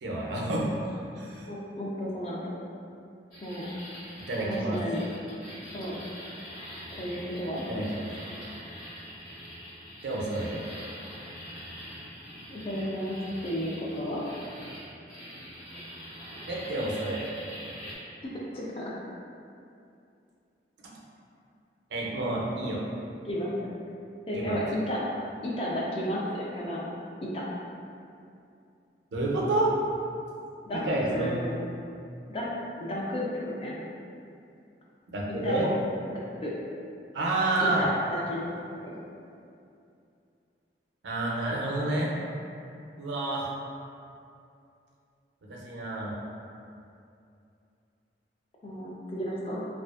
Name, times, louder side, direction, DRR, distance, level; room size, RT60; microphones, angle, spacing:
voice 1, 0.0-0.7 1.1-1.5 4.3-4.8 7.7-8.1 10.0-10.6 16.5-17.3 21.9-22.8 24.3-24.6 29.1-29.7 30.7-31.4 35.1-35.7 37.1-37.8 41.0-42.1 43.0-43.5 45.4-46.1, right 2 dB, 85° right, -3 dB, 0.5 m, -29 dB
voice 2, 1.5-2.4 3.4-3.7 4.4-5.0 5.7-5.9 7.0-7.6 12.5-14.2 18.3-18.9 23.2-23.7 24.3-25.0 25.4-26.9 27.2-27.4 30.6-31.6 32.3-32.5 32.8-33.2 33.6-33.8 35.3-35.7 36.1-36.5 37.6-39.0 48.6-49.7, equal, 30° left, -5 dB, 0.3 m, -33 dB
sound 1, 3.3-18.0, equal, 50° left, 1.1 m, -44 dB
2.5 x 2.3 x 2.3 m, 2.5 s
head